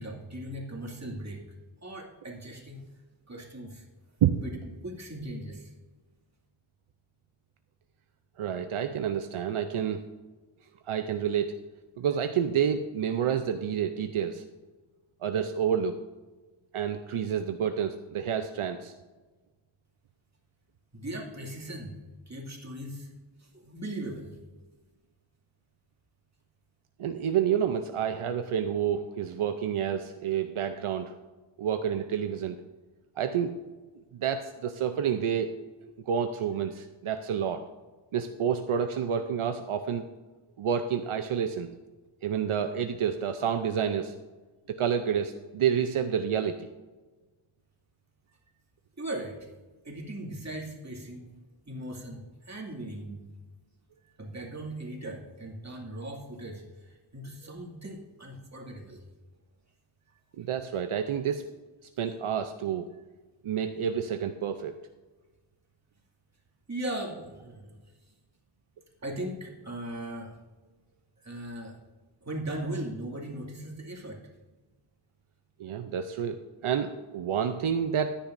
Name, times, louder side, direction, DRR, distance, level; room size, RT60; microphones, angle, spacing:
voice 1, 0.0-1.4 1.8-2.8 3.3-3.8 4.4-4.5 4.8-5.7 20.9-22.0 22.3-23.1 23.4-24.4 49.0-49.4 49.8-51.3 51.7-53.3 54.2-59.0 66.7-67.8 69.0-70.3 71.2-71.8 72.2-74.2, right 1 dB, 35° right, -1 dB, 2.3 m, -38 dB
voice 2, 8.4-10.0 10.9-11.5 12.0-14.4 15.2-16.0 16.7-18.9 27.0-31.2 31.6-32.6 33.2-33.6 33.9-35.5 36.1-37.6 38.1-40.1 40.6-41.7 42.2-44.1 44.7-46.7 60.4-61.5 62.0-62.9 63.4-64.7 75.6-76.4 76.6-78.2, right 8 dB, 80° right, 7 dB, 0.7 m, -29 dB
15.0 x 10.0 x 2.6 m, 1.3 s
wide cardioid pair, 100°, 49 cm